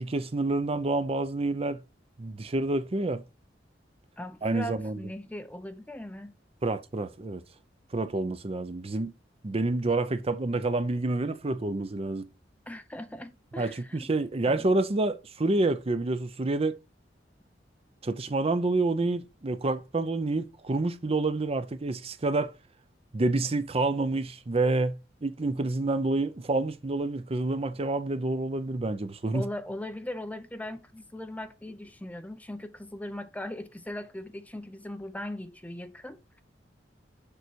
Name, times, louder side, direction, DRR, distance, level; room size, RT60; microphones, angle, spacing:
voice 1, 0.0-1.8 2.2-3.2 4.4-5.0 6.6-7.4 7.9-9.1 9.4-12.3 13.6-16.8 18.0-22.5 23.1-29.5, right 2 dB, 35° right, 0.6 m, -28 dB
voice 2, 4.2-6.3 12.7-14.1 14.5-14.8 29.3-36.2, left 1 dB, 10° left, 0.6 m, -39 dB
6.8 x 5.4 x 4.5 m
head